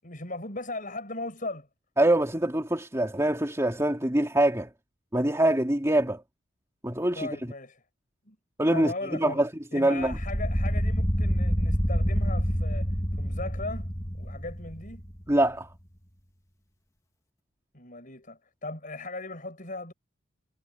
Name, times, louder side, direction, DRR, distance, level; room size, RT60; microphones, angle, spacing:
voice 1, 0.0-1.7 7.1-7.8 8.3-8.4 8.7-9.4 9.7-15.1 17.7-19.9, left 2 dB, 40° left, 6.8 m, -38 dB
voice 2, 2.0-4.7 5.1-6.2 6.8-7.3 8.6-10.2 15.3-15.7, right 1 dB, 15° right, 3.4 m, -24 dB
sound 1, 10.0-15.3, equal, 15° left, 2.2 m, -27 dB
head